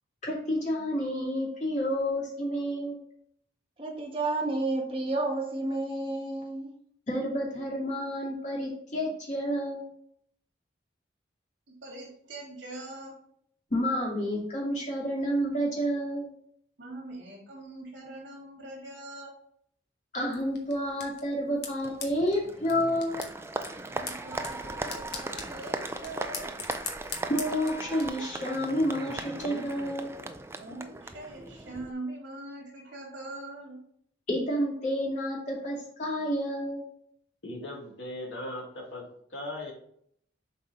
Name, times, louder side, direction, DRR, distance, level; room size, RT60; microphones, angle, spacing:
voice 1, 0.2-3.0 7.1-9.8 13.7-16.3 20.1-23.2 27.3-30.1 34.3-36.8, equal, 40° left, -3 dB, 2.4 m, -30 dB
voice 2, 3.8-6.7, right 2 dB, 30° right, -1 dB, 1.4 m, -30 dB
voice 3, 11.7-13.1 16.8-19.3 23.9-26.5 30.6-33.8, right 2 dB, 70° right, -1 dB, 3.0 m, -42 dB
sound 1, 20.3-28.1, left 5 dB, 60° left, 1.3 m, -43 dB
Applause, 21.8-31.9, right 2 dB, 15° right, 0.3 m, -38 dB
voice 4, 37.4-39.7, left 1 dB, 80° left, -1 dB, 2.2 m, -38 dB
7.3 x 4.1 x 4.0 m, 0.66 s
head